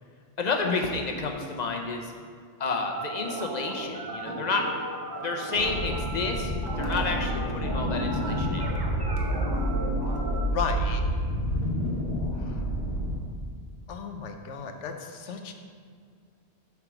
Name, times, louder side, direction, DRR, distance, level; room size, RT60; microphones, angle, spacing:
voice 1, 0.4-2.1 2.6-4.6 5.2-8.6, left 4 dB, 45° left, 3 dB, 0.8 m, -30 dB
sound 1, 2.9-10.5, right 1 dB, 25° right, 0.8 m, -37 dB
sound 2, 5.5-13.2, equal, 65° left, 1.4 m, -29 dB
sound 3, 6.5-11.2, equal, 50° right, 0.9 m, -37 dB
voice 2, 10.5-11.0 12.4-12.6 13.9-15.5, left 5 dB, 90° left, 5 dB, 1.0 m, -34 dB
8.1 x 3.6 x 6.0 m, 2.1 s
omnidirectional pair, 1.2 m